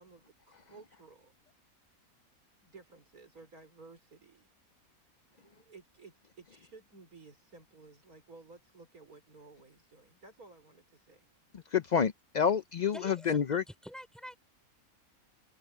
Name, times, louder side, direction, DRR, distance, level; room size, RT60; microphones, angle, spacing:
voice 1, 0.0-1.3 2.6-4.5 5.3-11.3, right 3 dB, 80° right, 5.2 m, -55 dB
voice 2, 11.7-13.6, left 7 dB, 70° left, 0.4 m, -28 dB
voice 3, 12.9-14.4, equal, ahead, 3.2 m, -48 dB
omnidirectional pair, 1.5 m